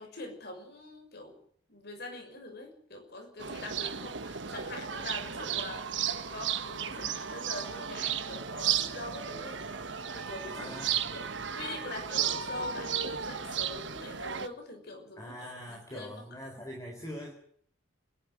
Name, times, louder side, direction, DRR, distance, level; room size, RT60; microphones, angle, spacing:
voice 1, 0.0-1.4 1.7-10.8 11.1-11.3 11.5-16.2, left 2 dB, 55° left, 3 dB, 6.2 m, -44 dB
sound 1, 3.4-14.5, right 8 dB, 70° right, 1.4 m, -34 dB
voice 2, 10.5-11.0 15.2-17.3, equal, 15° left, 0 dB, 4.2 m, -43 dB
27.5 x 12.5 x 9.4 m, 0.62 s
head